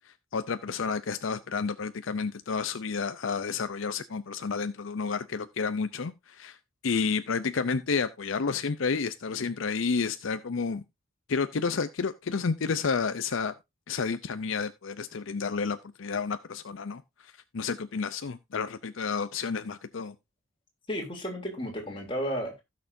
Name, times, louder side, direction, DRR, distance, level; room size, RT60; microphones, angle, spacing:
voice 1, 0.1-6.6 6.8-10.8 11.3-13.5 13.9-20.1, left 5 dB, 75° left, 0.6 m, -30 dB
voice 2, 20.9-22.6, equal, 25° left, 3.0 m, -33 dB
16.0 x 6.5 x 2.6 m
head